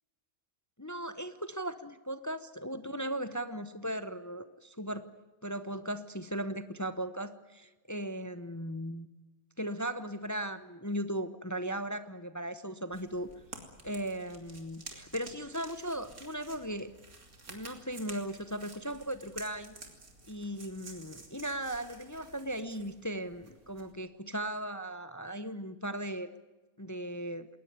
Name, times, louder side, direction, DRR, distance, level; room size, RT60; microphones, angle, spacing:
voice 1, 0.8-5.1 5.4-9.1 9.6-13.3 13.8-16.9 17.5-19.8 20.3-26.3 26.8-27.5, right 1 dB, 15° left, 12 dB, 0.7 m, -37 dB
sound 1, 12.9-23.9, right 3 dB, 90° right, 3.4 m, -51 dB
20.5 x 19.5 x 9.5 m, 1.2 s
omnidirectional pair, 1.5 m